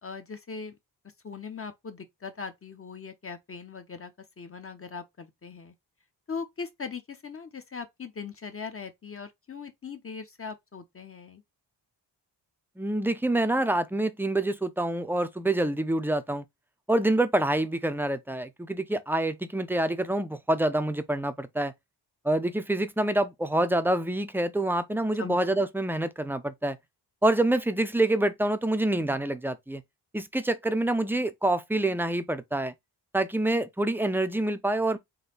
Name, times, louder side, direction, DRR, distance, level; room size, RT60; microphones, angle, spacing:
voice 1, 0.0-0.8 1.2-4.1 4.4-5.7 6.3-11.4 25.2-25.7, left 5 dB, 30° left, 0.8 m, -40 dB
voice 2, 12.8-16.4 16.9-21.7 22.2-26.8 27.2-29.8 30.1-32.7 33.1-35.0, right 1 dB, 5° right, 0.5 m, -26 dB
4.0 x 2.7 x 3.9 m
cardioid pair, 115°, 42 cm